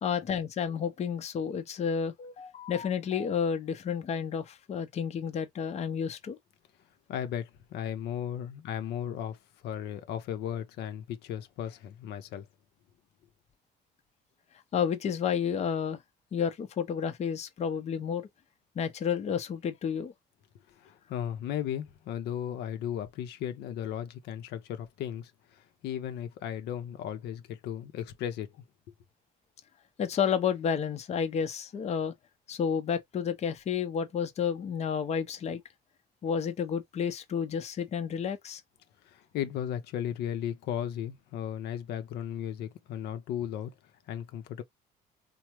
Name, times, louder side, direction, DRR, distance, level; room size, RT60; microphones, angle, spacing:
voice 1, 0.0-6.4 14.7-16.0 16.3-18.3 18.8-20.1 30.0-32.1 32.5-35.6 36.2-38.6, left 7 dB, 40° left, 0.6 m, -31 dB
voice 2, 7.1-12.5 20.8-28.5 39.0-43.7 44.1-44.6, left 9 dB, 80° left, 0.6 m, -36 dB
3.2 x 2.0 x 2.9 m
cardioid pair, 110°, 17 cm